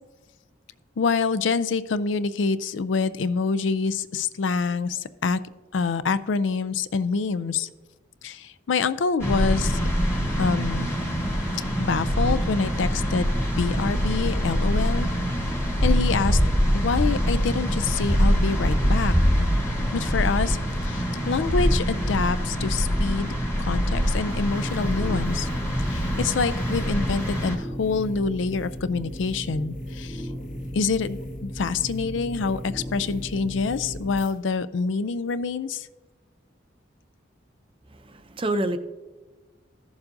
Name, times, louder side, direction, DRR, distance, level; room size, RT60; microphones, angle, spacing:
voice 1, 1.0-5.4 5.7-7.7 8.2-9.8 10.4-10.9 11.8-15.1 15.8-16.4 16.7-19.5 19.9-20.6 20.8-23.3 23.6-25.5 25.9-30.2 30.7-35.9, left 4 dB, 90° left, 15 dB, 0.4 m, -26 dB
sound 1, 9.2-27.6, equal, 15° left, 1.3 m, -24 dB
sound 2, 24.3-34.3, equal, 45° left, 1.7 m, -36 dB
voice 2, 37.9-38.8, right 1 dB, 30° right, 9 dB, 0.5 m, -27 dB
15.0 x 7.1 x 2.6 m, 1.2 s
head